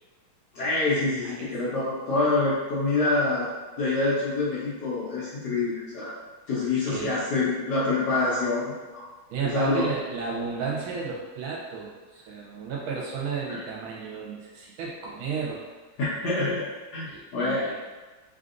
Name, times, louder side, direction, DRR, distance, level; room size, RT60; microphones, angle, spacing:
voice 1, 0.5-6.1 6.5-9.0 9.5-9.9 13.5-13.6 16.0-16.6 16.9-17.7, left 2 dB, 65° left, -9 dB, 1.1 m, -26 dB
voice 2, 9.3-15.6 17.1-17.8, right 5 dB, 80° right, -4 dB, 1.5 m, -33 dB
3.5 x 2.5 x 2.5 m, 1.3 s
omnidirectional pair, 2.4 m